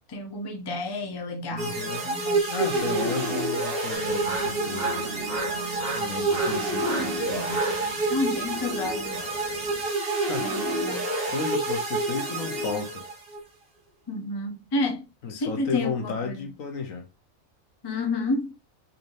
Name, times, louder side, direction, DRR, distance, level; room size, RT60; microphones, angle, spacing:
voice 1, 0.1-3.3 8.1-9.3 10.4-11.1 14.1-16.5 17.8-18.6, left 2 dB, 30° left, 0.4 m, -31 dB
voice 2, 1.5-2.0 2.5-5.1 5.9-7.6 10.3-10.5 11.3-13.0 15.2-17.1, left 5 dB, 70° left, 1.3 m, -33 dB
sound 1, 1.6-13.4, right 2 dB, 45° right, 1.2 m, -28 dB
sound 2, 3.9-9.8, right 3 dB, 25° right, 1.1 m, -36 dB
4.2 x 3.1 x 2.6 m
omnidirectional pair, 1.5 m